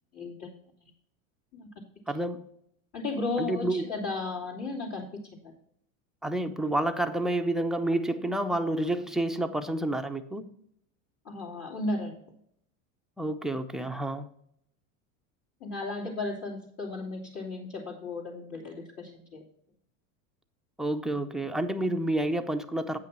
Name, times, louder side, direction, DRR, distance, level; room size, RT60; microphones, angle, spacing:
voice 1, 0.1-0.5 0.8-0.9 1.5-1.9 2.9-5.5 11.2-12.2 15.6-19.4, left 3 dB, 40° left, -6 dB, 2.9 m, -35 dB
voice 2, 2.1-2.4 3.4-3.8 6.2-10.4 13.2-14.3 20.8-23.0, right 1 dB, ahead, 5 dB, 0.6 m, -29 dB
9.0 x 5.8 x 5.9 m, 0.69 s
supercardioid pair, 120°, 40 cm